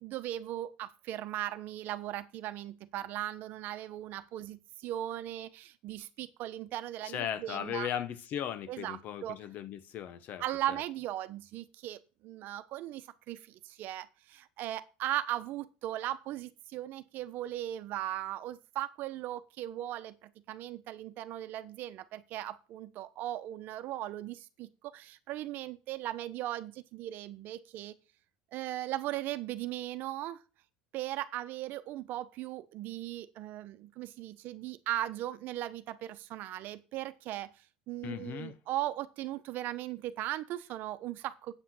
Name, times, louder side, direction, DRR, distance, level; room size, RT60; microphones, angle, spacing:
voice 1, 0.0-7.9 8.7-9.4 10.4-27.9 28.5-30.4 30.9-37.5 37.9-41.5, right 13 dB, 55° right, 1.0 m, -38 dB
voice 2, 7.0-10.4 38.0-38.6, left 9 dB, 50° left, 1.0 m, -37 dB
8.3 x 5.8 x 7.7 m
supercardioid pair, 115°, 4 cm